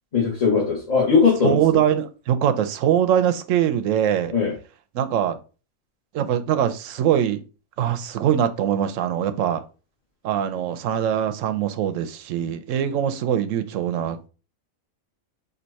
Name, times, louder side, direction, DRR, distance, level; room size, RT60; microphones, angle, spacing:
voice 1, 0.1-1.8 4.3-4.5, left 5 dB, 30° left, 1.3 m, -19 dB
voice 2, 1.4-4.3 4.9-5.4 6.1-7.4 7.8-9.6 10.2-14.3, right 9 dB, 70° right, 0.9 m, -22 dB
4.5 x 2.8 x 4.0 m
omnidirectional pair, 1.5 m